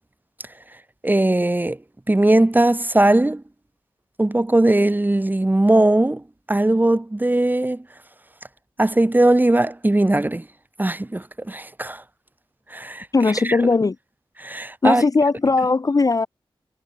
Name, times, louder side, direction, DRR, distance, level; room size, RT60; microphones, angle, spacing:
voice 1, 1.0-1.8 2.1-3.4 4.2-7.8 8.8-10.5 10.8-12.0 12.7-13.1 13.4-13.6 14.4-15.0, right 1 dB, 20° right, 1.3 m, -19 dB
voice 2, 13.1-14.0 14.8-16.3, left 3 dB, 40° left, 0.6 m, -18 dB
cardioid pair, 50°, 9 cm